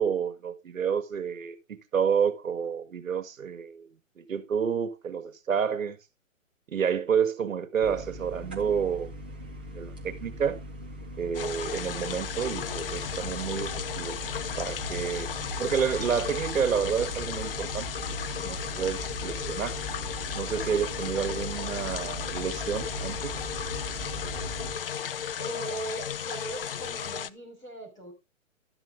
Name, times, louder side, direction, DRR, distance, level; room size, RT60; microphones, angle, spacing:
voice 1, 0.0-6.0 6.7-9.1 9.8-10.6 11.2-14.2 14.6-15.3 15.6-17.9 18.4-19.8 20.3-23.4, right 7 dB, 70° right, 1.8 m, -29 dB
sound 1, 7.8-24.7, equal, 10° right, 0.5 m, -39 dB
sound 2, 11.3-27.3, left 8 dB, 45° left, 0.6 m, -35 dB
voice 2, 21.5-22.0 25.4-28.1, right 1 dB, 10° left, 3.5 m, -39 dB
12.5 x 9.0 x 3.7 m
hypercardioid pair, 160°, 41 cm